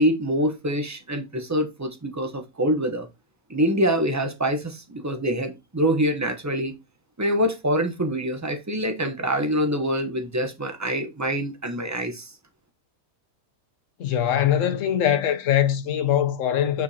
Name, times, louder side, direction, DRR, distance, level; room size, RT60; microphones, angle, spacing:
voice 1, 0.0-3.1 3.5-6.8 7.2-12.3, equal, 15° right, 0.7 m, -25 dB
voice 2, 14.0-16.8, left 10 dB, 65° left, 1.1 m, -22 dB
6.7 x 5.2 x 2.8 m
omnidirectional pair, 1.5 m